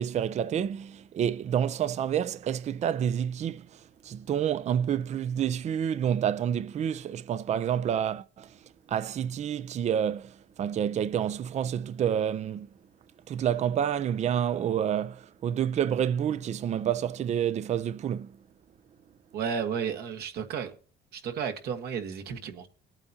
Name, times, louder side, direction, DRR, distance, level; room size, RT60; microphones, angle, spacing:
voice 1, 0.0-8.6 8.9-12.7 13.3-18.4, right 9 dB, 40° right, 0.5 m, -29 dB
voice 2, 19.3-20.8 21.1-22.7, right 7 dB, 70° right, 1.6 m, -33 dB
20.5 x 8.9 x 2.8 m
cardioid pair, 110°, 17 cm